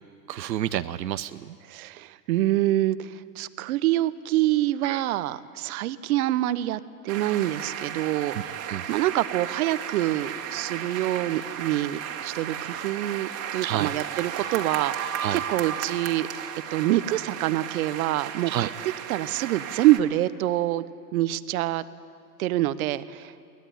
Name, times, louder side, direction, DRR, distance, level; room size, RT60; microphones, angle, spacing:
voice 1, 0.3-1.6 4.8-5.0 8.3-8.4 8.7-8.8 13.6-13.9 15.2-15.4 18.5-18.7, right 12 dB, 85° right, 11 dB, 0.8 m, -29 dB
voice 2, 1.7-16.3 16.7-20.8 21.1-21.8 22.4-23.3, right 15 dB, 60° right, 15 dB, 1.1 m, -26 dB
sound 1, 7.1-20.0, right 9 dB, 30° right, 2.1 m, -34 dB
22.5 x 18.5 x 10.0 m, 2.4 s
hypercardioid pair, 115°, 50 cm